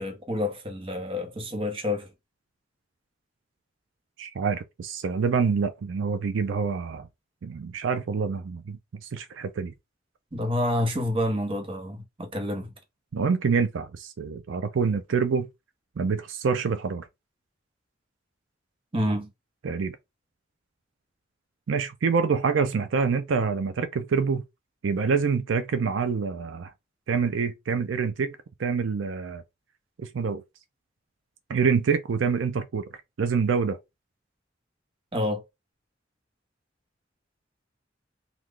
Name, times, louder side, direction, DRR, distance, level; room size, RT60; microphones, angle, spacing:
voice 1, 0.0-2.1 10.3-12.7 18.9-19.3 35.1-35.4, left 1 dB, 30° right, 0.9 m, -28 dB
voice 2, 4.2-7.1 7.4-8.8 9.1-9.7 13.1-15.5 16.0-17.1 19.6-20.0 21.7-24.4 24.8-26.7 27.1-29.4 30.0-30.4 31.5-32.8 33.2-33.8, right 5 dB, 80° right, 0.4 m, -26 dB
3.1 x 2.3 x 3.6 m
head